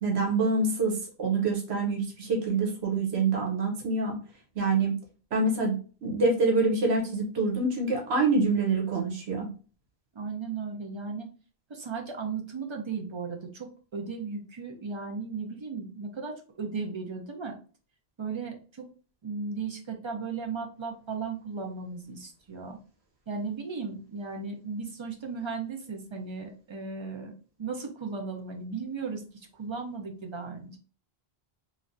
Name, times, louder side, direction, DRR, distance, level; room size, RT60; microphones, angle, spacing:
voice 1, 0.0-4.1 4.5-5.0 5.3-5.8 6.0-9.5, right 3 dB, 80° right, 0 dB, 1.1 m, -26 dB
voice 2, 10.1-11.3 11.7-17.6 18.2-18.9 19.2-22.8 23.3-27.3 27.6-30.8, right 4 dB, 40° right, 2 dB, 0.4 m, -36 dB
3.1 x 2.4 x 2.5 m, 0.38 s
omnidirectional pair, 1.1 m